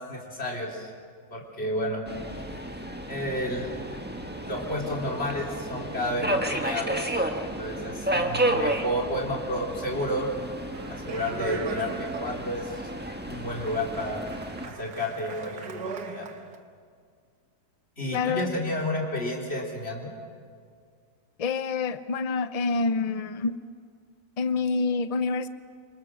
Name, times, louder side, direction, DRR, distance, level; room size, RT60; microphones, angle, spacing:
voice 1, 0.1-0.9 1.3-2.0 3.1-3.8 4.5-7.2 7.6-10.3 10.9-12.8 13.3-14.2 14.6-16.3 18.0-20.1, left 1 dB, 40° left, -1 dB, 4.3 m, -31 dB
Subway metro underground, 2.1-14.7, right 1 dB, 5° right, 1.5 m, -32 dB
Speech, 10.7-16.6, right 4 dB, 75° right, 1.8 m, -39 dB
voice 2, 18.1-18.5 21.4-23.6 24.4-25.5, left 4 dB, 55° left, 12 dB, 0.4 m, -27 dB
26.5 x 25.5 x 6.5 m, 2.2 s
omnidirectional pair, 1.7 m